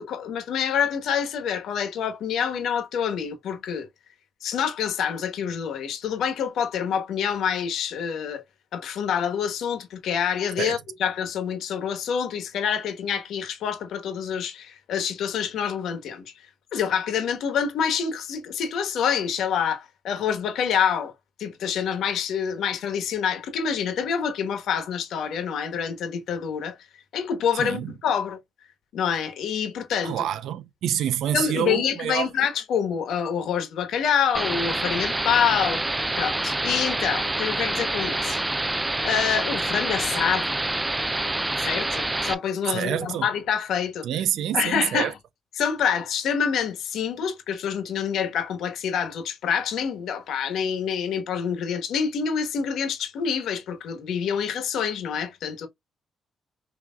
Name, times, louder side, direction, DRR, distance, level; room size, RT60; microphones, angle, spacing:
voice 1, 0.0-3.9 4.4-8.4 8.7-16.3 16.7-21.1 21.4-26.7 27.1-28.4 28.9-30.2 31.3-38.4 39.0-40.6 41.6-44.1 44.5-45.1 45.6-55.7, left 7 dB, 75° left, 1.2 m, -27 dB
voice 2, 27.5-27.9 30.0-32.3 42.7-43.3 44.0-45.1, right 10 dB, 80° right, 0.5 m, -27 dB
sound 1, 34.3-42.3, right 2 dB, 15° right, 0.4 m, -27 dB
5.7 x 2.9 x 2.3 m
cardioid pair, 90°, 0 cm